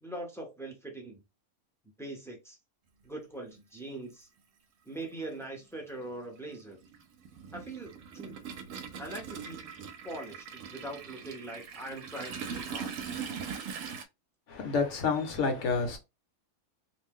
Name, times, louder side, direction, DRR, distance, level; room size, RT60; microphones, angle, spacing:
voice 1, 0.0-1.2 2.0-2.6 3.0-4.3 4.9-6.8 7.5-8.4 9.0-9.7 10.0-12.9, right 1 dB, 5° left, 0.6 m, -42 dB
Toilet flush, 3.6-3.7 4.9-5.1 5.4-14.0, right 6 dB, 70° right, 0.9 m, -41 dB
voice 2, 14.5-16.0, left 4 dB, 60° left, 1.1 m, -29 dB
2.7 x 2.1 x 3.5 m
omnidirectional pair, 1.5 m